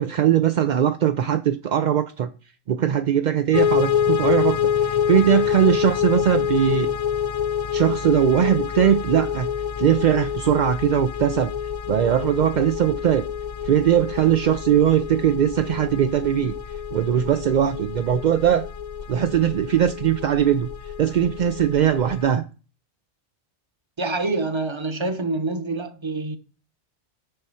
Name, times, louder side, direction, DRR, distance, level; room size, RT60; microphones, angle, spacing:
voice 1, 0.0-2.3 2.7-6.9 7.7-9.5 9.8-11.5 11.9-13.3 13.6-16.5 16.9-18.6 19.1-20.7 21.0-22.4, right 10 dB, 60° right, 0.5 m, -20 dB
sound 1, 3.5-22.3, left 8 dB, 65° left, 0.3 m, -27 dB
voice 2, 24.0-26.4, right 2 dB, 25° right, 0.9 m, -26 dB
6.8 x 5.5 x 6.9 m
omnidirectional pair, 1.2 m